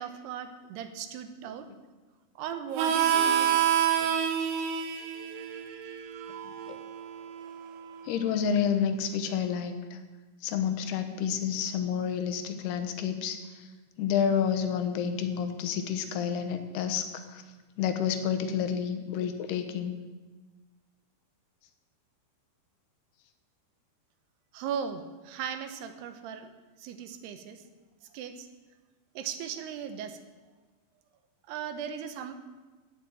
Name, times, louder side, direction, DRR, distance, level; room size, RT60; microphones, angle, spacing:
voice 1, 0.0-1.7 2.4-3.8 24.5-26.5 26.8-27.6 28.1-28.5 29.1-30.2 31.5-32.3, right 8 dB, 90° right, 8 dB, 3.1 m, -37 dB
Harmonica, 2.8-8.0, right 9 dB, 70° right, 2.3 m, -28 dB
voice 2, 8.1-10.0 10.4-13.4 14.0-17.4 17.8-20.0, left 7 dB, 85° left, 7 dB, 3.1 m, -29 dB
15.5 x 6.2 x 8.9 m, 1.3 s
omnidirectional pair, 4.6 m